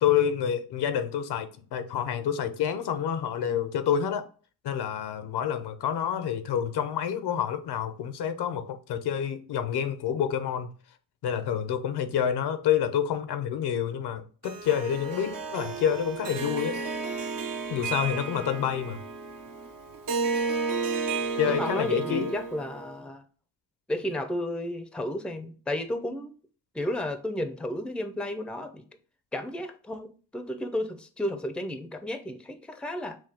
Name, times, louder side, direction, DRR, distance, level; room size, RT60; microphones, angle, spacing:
voice 1, 0.0-4.3 4.6-10.7 11.2-16.8 17.7-19.0 21.4-22.3, left 9 dB, 80° left, 0.8 m, -28 dB
Harp, 14.4-22.9, right 4 dB, 55° right, 0.9 m, -32 dB
voice 2, 21.4-23.2 23.9-26.3 26.7-28.9 29.3-33.2, left 1 dB, 5° left, 0.5 m, -32 dB
6.2 x 2.3 x 3.5 m
cardioid pair, 100°, 39 cm